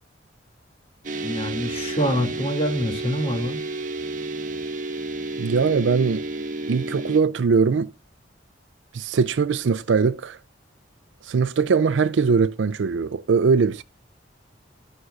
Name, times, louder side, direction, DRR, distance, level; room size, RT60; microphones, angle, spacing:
sound 1, 1.0-7.2, right 2 dB, 45° right, 1.2 m, -31 dB
voice 1, 1.2-3.6, equal, 30° left, 2.3 m, -26 dB
voice 2, 5.4-6.2 6.7-7.9 8.9-10.4 11.2-13.8, right 5 dB, 75° right, 0.4 m, -21 dB
11.5 x 11.0 x 2.3 m
head